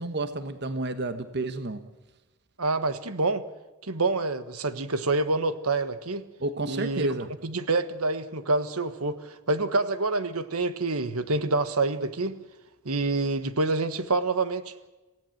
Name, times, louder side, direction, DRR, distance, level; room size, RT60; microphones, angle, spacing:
voice 1, 0.0-1.8 6.4-7.3, right 2 dB, 50° right, 9 dB, 1.2 m, -30 dB
voice 2, 2.6-3.4 3.8-6.2 6.7-7.1 7.4-12.4 12.8-14.7, right 3 dB, 75° right, 11 dB, 1.4 m, -27 dB
27.5 x 17.0 x 7.9 m, 1.1 s
head